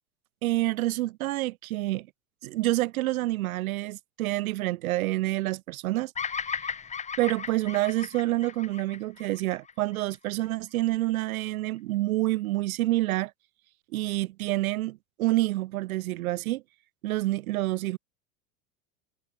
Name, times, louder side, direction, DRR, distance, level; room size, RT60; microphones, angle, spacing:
voice 1, 0.4-2.1 2.4-6.1 7.2-13.3 13.9-16.6 17.0-18.0, right 17 dB, 70° right, 2.4 m, -28 dB
Bird vocalization bird call bird song, 6.1-10.4, left 6 dB, 15° left, 1.2 m, -36 dB
hypercardioid pair, 110°, 43 cm